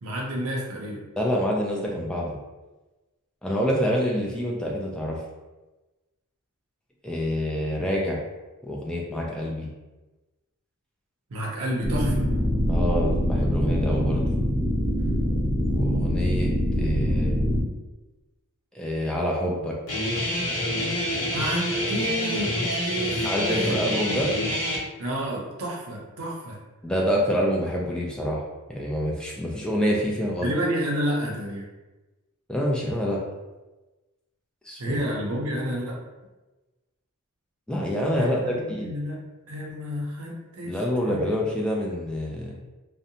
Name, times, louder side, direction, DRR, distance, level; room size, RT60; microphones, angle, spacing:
voice 1, 0.0-1.0 11.3-12.2 21.3-23.8 25.0-26.6 30.4-31.7 34.8-36.0 38.2-41.2, equal, 75° right, -2 dB, 0.5 m, -30 dB
voice 2, 1.2-2.4 3.4-5.2 7.0-8.2 8.6-9.7 12.7-14.3 15.7-17.4 18.7-19.8 23.2-24.3 26.8-28.4 28.7-30.5 32.5-33.2 34.6-35.0 37.7-38.9 40.6-42.6, equal, 5° left, -3 dB, 0.3 m, -27 dB
sound 1, 11.8-17.6, equal, 45° left, 1.0 m, -24 dB
Guitar, 19.9-24.8, left 1 dB, 65° left, 0.7 m, -27 dB
2.6 x 2.1 x 2.6 m, 1.1 s
head